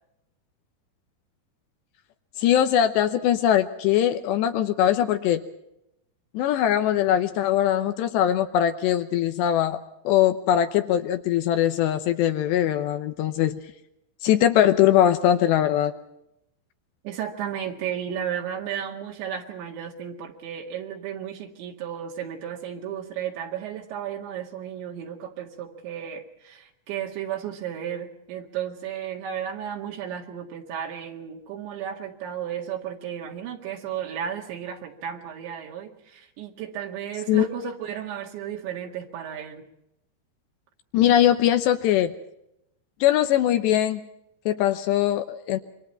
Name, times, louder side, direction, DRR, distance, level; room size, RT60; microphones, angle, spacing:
voice 1, 2.4-5.4 6.3-9.8 10.1-13.6 14.2-15.9 37.3-37.7 40.9-42.1 43.0-44.0 44.5-45.6, left 11 dB, 80° left, 8 dB, 3.0 m, -21 dB
voice 2, 17.0-39.7, right 9 dB, 80° right, 0 dB, 4.2 m, -34 dB
27.5 x 24.0 x 4.4 m, 0.83 s
omnidirectional pair, 5.1 m